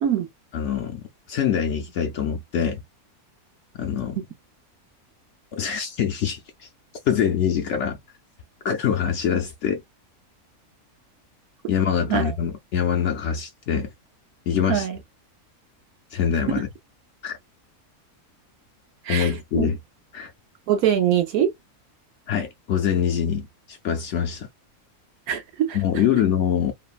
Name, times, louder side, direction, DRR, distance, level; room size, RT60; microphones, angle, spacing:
voice 1, 0.5-1.0 1.3-2.8 3.8-4.2 5.5-6.4 7.1-8.0 8.6-9.8 11.7-13.9 14.5-14.9 16.1-16.7 17.2-17.4 19.1-19.8 20.1-20.3 22.3-24.5 25.7-26.7, left 8 dB, 65° left, 0.7 m, -24 dB
voice 2, 19.0-19.7 20.7-21.5 25.3-26.0, right 10 dB, 75° right, 1.2 m, -23 dB
3.1 x 2.1 x 2.3 m
omnidirectional pair, 1.6 m